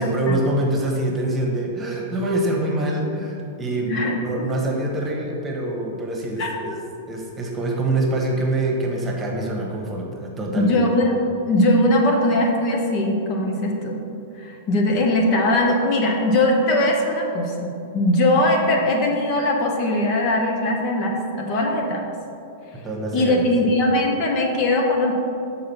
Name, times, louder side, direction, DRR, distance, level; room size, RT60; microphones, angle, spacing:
voice 1, 0.0-6.8 7.1-10.8 22.8-23.7, right 1 dB, 20° right, -1 dB, 1.3 m, -25 dB
voice 2, 3.9-4.5 6.4-6.8 10.6-11.1 11.5-14.0 14.4-22.0 23.1-25.1, left 1 dB, 40° left, 0 dB, 0.9 m, -20 dB
6.5 x 4.0 x 5.8 m, 2.7 s
figure-of-eight pair, 100°, 0 cm